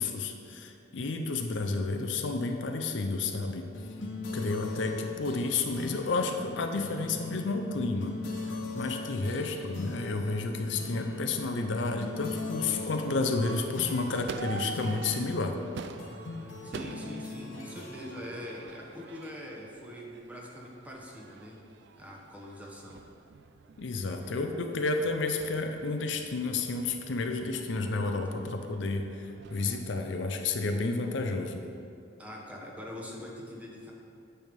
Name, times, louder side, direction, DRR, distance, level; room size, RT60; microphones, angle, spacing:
voice 1, 0.0-3.7 4.3-8.2 8.4-15.6 23.8-31.7, left 3 dB, 75° left, 5 dB, 0.5 m, -31 dB
sound 1, 3.7-19.6, left 2 dB, 90° left, 0.9 m, -40 dB
voice 2, 9.2-9.5 16.6-21.6 22.0-23.0 32.2-33.9, equal, 10° right, -2 dB, 0.9 m, -43 dB
Crowd / Fireworks, 10.9-29.9, right 5 dB, 65° right, 0.4 m, -47 dB
9.0 x 3.4 x 5.2 m, 2.6 s
head